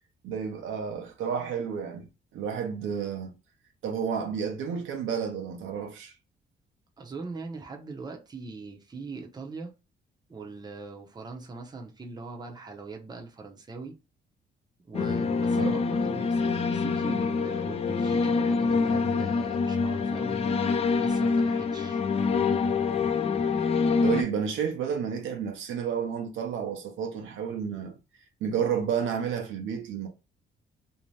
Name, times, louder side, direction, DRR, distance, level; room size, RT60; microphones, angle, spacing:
voice 1, 0.2-3.3 3.8-6.1 15.5-15.8 24.0-28.0 28.4-30.1, right 7 dB, 80° right, 0.7 m, -31 dB
voice 2, 7.0-9.7 10.3-13.9 14.9-20.6 21.0-22.0, right 4 dB, 20° right, 0.6 m, -41 dB
sound 1, 14.9-24.2, left 4 dB, 30° left, 0.4 m, -26 dB
2.7 x 2.1 x 3.2 m
cardioid pair, 90°, 20 cm